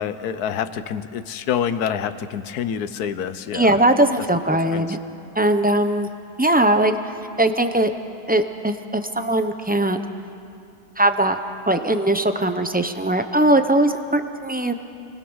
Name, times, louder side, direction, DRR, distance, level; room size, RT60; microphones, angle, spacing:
voice 1, 0.0-3.8 4.5-5.0, left 8 dB, 75° left, 12 dB, 1.4 m, -27 dB
voice 2, 3.5-5.0 5.3-6.1 6.4-7.1 7.4-7.9 8.3-10.0 11.0-11.4 11.7-14.7, right 1 dB, 10° right, 7 dB, 0.5 m, -20 dB
29.0 x 20.0 x 6.4 m, 2.5 s
omnidirectional pair, 1.7 m